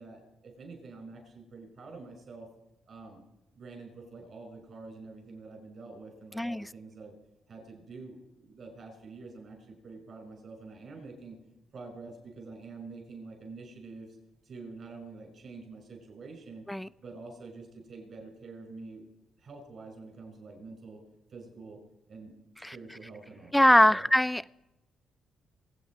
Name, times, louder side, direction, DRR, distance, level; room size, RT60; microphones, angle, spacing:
voice 1, 0.0-2.5 2.9-3.2 3.6-7.1 7.5-11.4 11.7-14.2 14.4-16.6 17.0-19.0 19.4-21.0 21.3-21.8 22.1-24.0, right 3 dB, 55° right, 3 dB, 6.0 m, -47 dB
voice 2, 6.3-6.7 16.7-16.9 22.6-22.8 23.5-24.5, left 1 dB, 5° left, 16 dB, 0.4 m, -22 dB
24.5 x 8.6 x 4.9 m, 0.92 s
cardioid pair, 90°, 0 cm